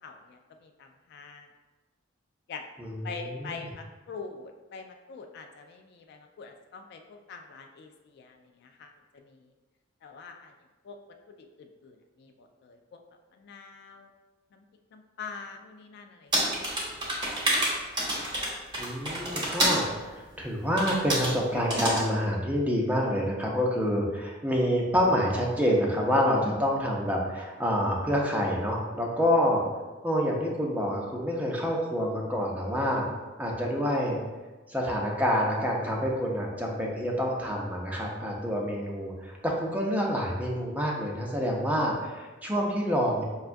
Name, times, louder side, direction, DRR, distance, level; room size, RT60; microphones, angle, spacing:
voice 1, 0.0-1.5 2.5-2.6 3.0-9.4 10.0-10.5 10.8-11.0 11.3-13.0 13.3-14.1 14.5-14.6 14.9-16.3 16.9-17.2, left 5 dB, 55° left, 5 dB, 0.3 m, -44 dB
voice 2, 2.8-3.7 18.8-29.6 30.0-33.0 33.4-34.2 34.7-43.2, equal, 10° right, -2 dB, 0.5 m, -27 dB
sound 1, 16.3-19.8 20.8-21.3 21.7-22.0, right 1 dB, 25° right, 0.9 m, -28 dB
5.5 x 2.3 x 2.5 m, 1.2 s
head